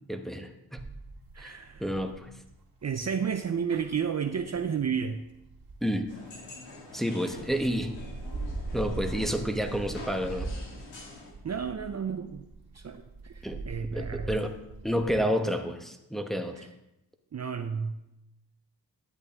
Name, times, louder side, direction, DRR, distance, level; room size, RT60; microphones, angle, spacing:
voice 1, 0.1-0.8 1.4-2.3 5.8-6.1 6.9-7.9 8.7-10.5 13.4-13.6 13.9-14.5 14.8-16.6, equal, ahead, 5 dB, 1.1 m, -30 dB
sound 1, 0.8-6.7 7.3-15.2, right 3 dB, 65° right, 2.4 m, -41 dB
voice 2, 1.3-1.9 2.8-5.2 11.4-12.4 12.7-14.4 16.6-16.7 17.3-17.9, right 7 dB, 40° right, 7 dB, 0.6 m, -32 dB
sound 2, 6.1-11.3, left 2 dB, 80° left, 2.1 m, -46 dB
10.5 x 8.3 x 3.5 m, 0.88 s
cardioid pair, 45°, 43 cm